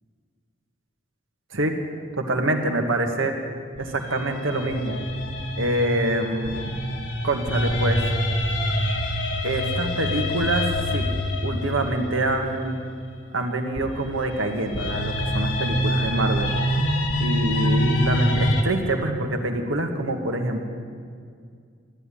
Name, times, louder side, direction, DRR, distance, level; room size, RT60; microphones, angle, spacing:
voice 1, 2.2-3.3 3.8-5.0 5.6-6.8 7.2-8.0 9.4-10.7 10.9-11.1 11.4-12.8 13.3-16.5 17.2-20.7, right 1 dB, 85° right, 3 dB, 1.7 m, -25 dB
sound 1, 3.8-12.9 13.8-18.6, left 1 dB, 75° left, 1.8 m, -26 dB
13.5 x 10.5 x 10.0 m, 2.2 s
head